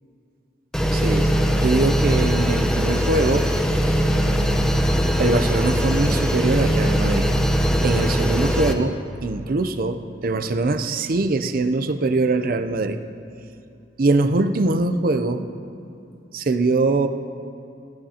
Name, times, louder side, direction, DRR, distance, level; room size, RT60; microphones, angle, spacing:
sound 1, 0.7-8.7, equal, 5° left, 0.7 m, -20 dB
voice 1, 0.9-3.5 5.2-7.3 7.8-13.0 14.0-15.4 16.3-17.1, right 2 dB, 55° right, 9 dB, 0.5 m, -22 dB
17.0 x 13.0 x 2.9 m, 2.8 s
head